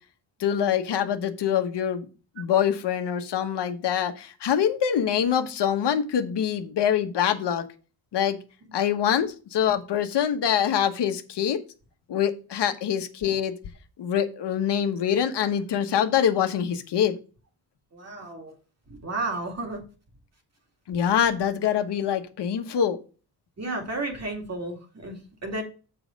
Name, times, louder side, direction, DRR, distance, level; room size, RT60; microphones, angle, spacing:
voice 1, 0.4-2.1 2.4-7.6 8.1-8.4 8.7-11.6 12.1-13.5 14.0-17.1 20.9-23.0, left 9 dB, 75° left, 7 dB, 1.2 m, -24 dB
voice 2, 17.9-18.5 18.9-19.8 23.6-25.6, right 2 dB, 40° right, 2 dB, 2.5 m, -32 dB
7.2 x 4.9 x 5.2 m, 0.34 s
wide cardioid pair, 150°, 41 cm